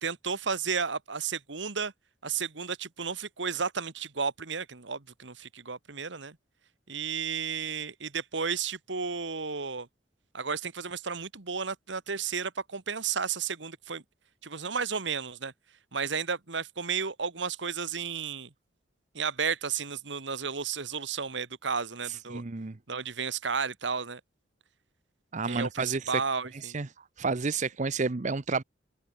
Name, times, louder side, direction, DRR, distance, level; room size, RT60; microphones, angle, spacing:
voice 1, 0.0-1.9 2.2-6.4 6.9-9.9 10.3-14.0 14.4-15.5 15.9-18.5 19.2-22.4 22.9-24.2 25.5-26.8, right 5 dB, 70° right, 1.6 m, -33 dB
voice 2, 22.1-22.8 25.3-26.2 26.6-26.9 27.2-28.6, right 4 dB, 40° right, 0.7 m, -30 dB
open air
head